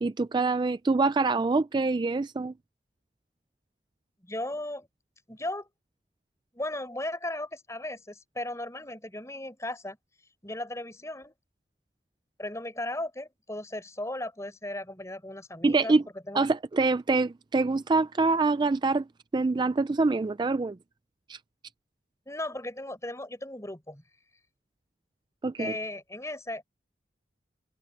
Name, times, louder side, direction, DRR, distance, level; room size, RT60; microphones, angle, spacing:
voice 1, 0.0-2.5 15.6-16.0 16.3-19.0 19.3-20.8 21.3-21.4 25.4-25.8, right 3 dB, 25° right, 0.3 m, -25 dB
voice 2, 4.2-4.9 5.3-5.7 6.5-10.0 10.4-11.3 12.4-15.9 16.3-16.4 22.3-24.0 25.6-26.6, left 1 dB, 15° left, 4.5 m, -36 dB
head